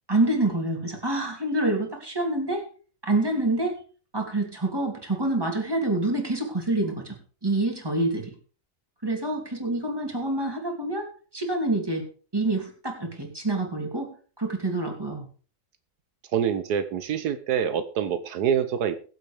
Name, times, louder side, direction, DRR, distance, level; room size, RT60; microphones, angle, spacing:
voice 1, 0.1-2.6 3.0-3.7 4.1-7.2 7.4-8.3 9.0-12.0 12.3-14.1 14.4-15.3, right 2 dB, 15° right, 2 dB, 2.9 m, -27 dB
voice 2, 16.3-19.0, right 8 dB, 80° right, 10 dB, 1.4 m, -26 dB
21.5 x 7.9 x 3.5 m, 0.39 s
omnidirectional pair, 1.7 m